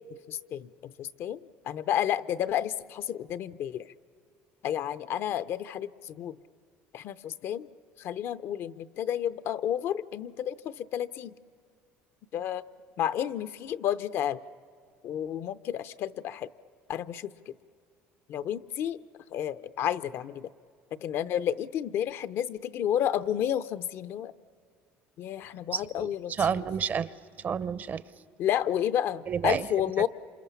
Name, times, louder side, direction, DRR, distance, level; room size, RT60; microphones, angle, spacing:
voice 1, 0.3-1.4 1.6-3.9 4.6-6.4 6.9-7.7 8.0-11.3 12.3-12.6 13.0-14.4 15.0-16.5 16.9-17.5 18.3-19.0 19.3-20.5 20.9-24.3 25.2-26.6 28.4-30.1, left 10 dB, 55° left, 14 dB, 0.6 m, -31 dB
voice 2, 25.7-27.1 27.4-28.0 29.3-29.7, right 7 dB, 40° right, 17 dB, 0.7 m, -30 dB
27.5 x 27.5 x 7.1 m, 2.2 s
cardioid pair, 115°, 5 cm